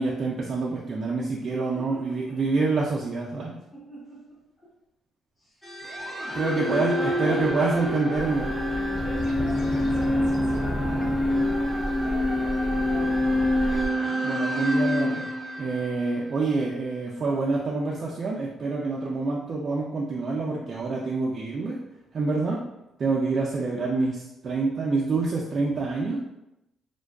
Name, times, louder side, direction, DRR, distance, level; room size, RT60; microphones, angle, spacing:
voice 1, 0.0-3.6 6.3-8.5 14.2-15.2 15.6-21.8 22.1-22.6 23.0-26.2, right 3 dB, 50° right, -4 dB, 0.3 m, -27 dB
voice 2, 1.6-2.4 3.7-4.7 5.4-5.6 6.5-7.8 9.0-13.5, equal, 20° left, -11 dB, 0.9 m, -42 dB
sound 1, 5.6-16.8, equal, 5° left, 0.5 m, -33 dB
sound 2, 6.3-15.9, left 1 dB, 55° left, 0.6 m, -27 dB
sound 3, 8.1-13.9, equal, 90° left, 1.0 m, -36 dB
2.5 x 2.2 x 2.3 m, 0.89 s
cardioid pair, 90°, 0 cm